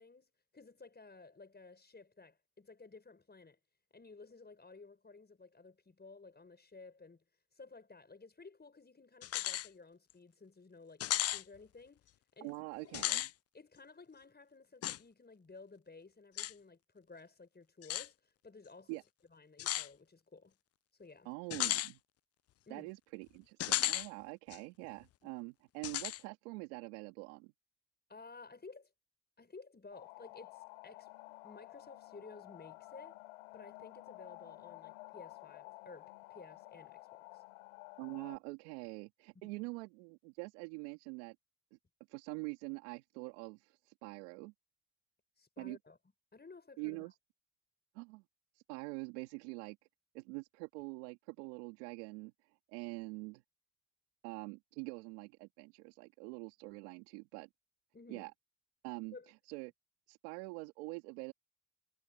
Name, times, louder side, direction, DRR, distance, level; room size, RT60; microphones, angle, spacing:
voice 1, 0.0-3.6 3.9-7.2 7.5-12.6 13.5-19.0 19.3-20.5 20.9-21.3 22.7-22.9 28.1-28.9 29.4-31.1 31.4-33.2 33.5-37.4 39.3-39.5 45.4-46.0 46.3-47.1 57.9-58.3 59.1-59.3, left 4 dB, 30° left, 6.0 m, -55 dB
sound 1, 9.2-9.7 10.1-10.2 11.0-11.4 12.9-13.3 14.8-15.0 16.4-16.5 17.8-18.1 19.6-19.9 21.5-21.9 23.6-24.1 24.5-24.6 25.8-26.2, left 13 dB, 45° left, 0.5 m, -34 dB
voice 2, 12.4-13.3 18.9-19.0 21.2-22.0 22.7-27.5 38.0-41.3 42.1-44.5 45.6-45.8 46.8-47.1 47.9-48.2 48.5-49.8 50.1-52.3 52.7-53.4 54.2-57.5 58.1-58.3 58.8-59.1 59.5-59.7 60.1-61.3, right 27 dB, 85° right, 3.0 m, -45 dB
sound 2, 29.9-38.4, left 23 dB, 85° left, 3.7 m, -53 dB
hypercardioid pair, 45°, 34 cm